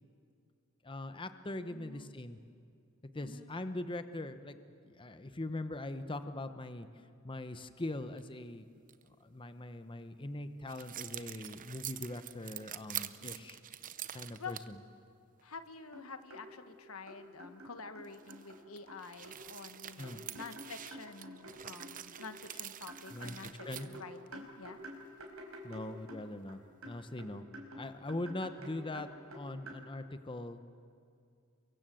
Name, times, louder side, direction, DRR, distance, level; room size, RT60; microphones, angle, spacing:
voice 1, 0.8-2.4 3.1-4.6 4.8-6.9 7.2-8.7 9.2-13.6 14.1-14.8 20.0-20.2 23.1-23.9 25.6-27.5 27.8-30.6, left 1 dB, 25° left, 10 dB, 0.9 m, -41 dB
voice 2, 1.7-2.2 3.2-3.5 13.2-13.5 14.4-14.5 15.4-24.8, left 4 dB, 85° left, 9 dB, 1.6 m, -48 dB
sound 1, 7.9-8.2 8.9-9.1 10.7-14.7 15.4-15.5 18.0-24.3, right 11 dB, 40° right, 0.8 m, -46 dB
sound 2, 15.6-15.7 15.9-16.4 17.1-18.6 18.9-19.4 20.0-22.3 22.9-26.5 26.8-29.8, equal, 75° right, 5.0 m, -49 dB
30.0 x 23.5 x 7.7 m, 2.3 s
head